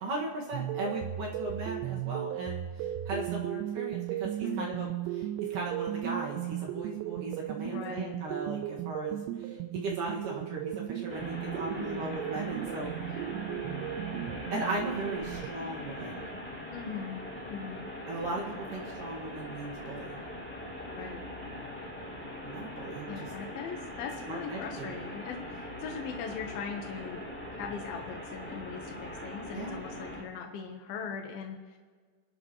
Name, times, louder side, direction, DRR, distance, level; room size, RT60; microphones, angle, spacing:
voice 1, 0.0-12.9 14.5-16.2 18.1-20.2 22.4-23.3 24.2-24.9 29.5-29.8, right 2 dB, 55° right, -2 dB, 2.6 m, -37 dB
sound 1, 0.5-15.5, right 12 dB, 85° right, 2.6 m, -36 dB
voice 2, 7.6-8.2 11.8-12.0 16.7-17.2 17.5-17.9 21.0-21.2 23.1-27.2 27.6-31.8, left 6 dB, 75° left, 3 dB, 2.2 m, -40 dB
sound 2, 11.1-30.2, left 1 dB, 5° left, 1.3 m, -41 dB
30.0 x 12.0 x 3.0 m, 1.5 s
omnidirectional pair, 5.6 m